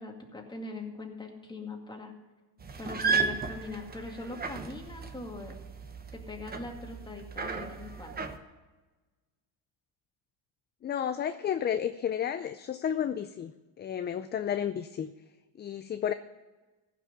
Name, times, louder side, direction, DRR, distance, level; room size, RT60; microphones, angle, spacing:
voice 1, 0.0-2.1 2.8-5.6 6.1-8.2, left 3 dB, 10° left, 1 dB, 2.2 m, -41 dB
sound 1, 2.6-8.4, right 5 dB, 20° right, 1.0 m, -34 dB
voice 2, 10.8-13.5 13.8-15.1 15.6-16.1, left 9 dB, 25° left, 10 dB, 0.4 m, -32 dB
15.5 x 6.1 x 7.0 m, 1.2 s
cardioid pair, 120°, 41 cm